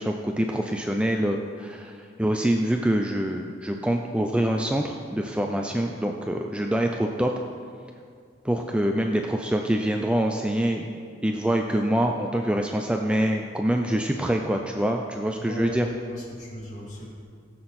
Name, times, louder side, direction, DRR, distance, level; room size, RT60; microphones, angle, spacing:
voice 1, 0.0-7.3 8.4-10.9 11.2-15.9, right 1 dB, 5° right, 2 dB, 0.5 m, -25 dB
voice 2, 15.4-17.0, equal, 40° left, -6 dB, 3.2 m, -36 dB
17.0 x 7.8 x 4.3 m, 2.2 s
head